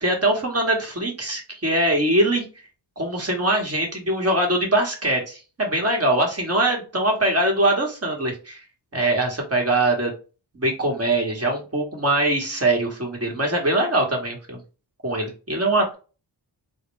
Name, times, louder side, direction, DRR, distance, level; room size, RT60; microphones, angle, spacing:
voice 1, 0.0-2.4 3.0-8.6 8.9-10.1 10.5-14.6 15.0-16.0, right 1 dB, 30° right, 1 dB, 1.3 m, -22 dB
4.0 x 2.2 x 3.1 m, 0.34 s
wide cardioid pair, 95°, 46 cm